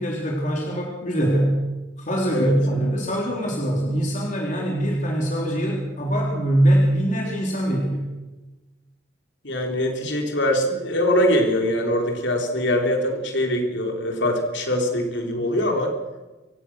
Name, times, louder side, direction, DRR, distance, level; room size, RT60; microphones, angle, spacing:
voice 1, 0.0-1.6 2.0-8.0, right 1 dB, 40° left, -1 dB, 3.8 m, -23 dB
voice 2, 9.4-15.9, equal, 60° left, 2 dB, 4.0 m, -23 dB
26.5 x 16.5 x 6.5 m, 1.1 s
head